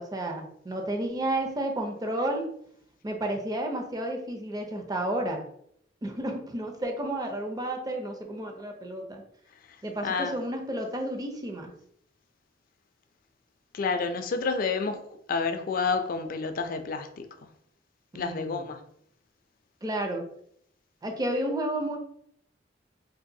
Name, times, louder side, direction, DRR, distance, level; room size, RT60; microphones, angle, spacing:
voice 1, 0.0-2.5 3.0-5.4 6.0-9.2 9.8-11.7 18.1-18.7 19.8-20.3 21.0-22.0, right 1 dB, 20° right, 0.5 m, -31 dB
voice 2, 10.0-10.4 13.7-17.5 18.1-18.8, left 4 dB, 50° left, 0.4 m, -29 dB
3.8 x 2.5 x 2.6 m
head